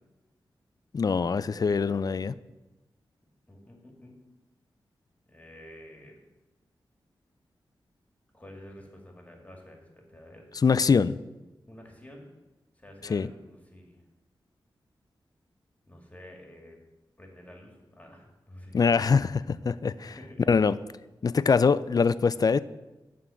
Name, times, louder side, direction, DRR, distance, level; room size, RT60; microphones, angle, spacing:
voice 1, 0.9-2.3 10.6-11.2 13.1-13.3 18.7-20.1 20.5-20.8 21.2-22.6, left 5 dB, 45° left, 16 dB, 0.4 m, -23 dB
voice 2, 3.5-4.1 5.3-6.2 8.3-10.5 11.7-12.3 12.8-14.0 15.9-16.8 17.2-19.2 20.0-20.6, left 1 dB, 15° left, 1 dB, 1.9 m, -49 dB
11.0 x 3.7 x 6.9 m, 1.1 s
cardioid pair, 55°, 9 cm